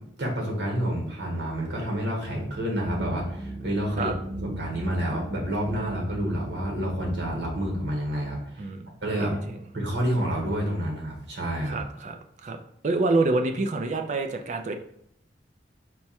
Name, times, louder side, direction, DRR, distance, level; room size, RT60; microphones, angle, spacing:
voice 1, 0.2-4.1 4.4-8.7 9.0-9.4 9.7-11.8, equal, 65° right, -1 dB, 1.3 m, -29 dB
sound 1, 2.8-7.8, right 1 dB, 15° left, 0.7 m, -38 dB
voice 2, 8.6-8.9 9.2-9.6 11.6-12.6 12.8-14.7, right 2 dB, 40° right, 5 dB, 0.4 m, -27 dB
4.5 x 2.2 x 4.2 m, 0.73 s
head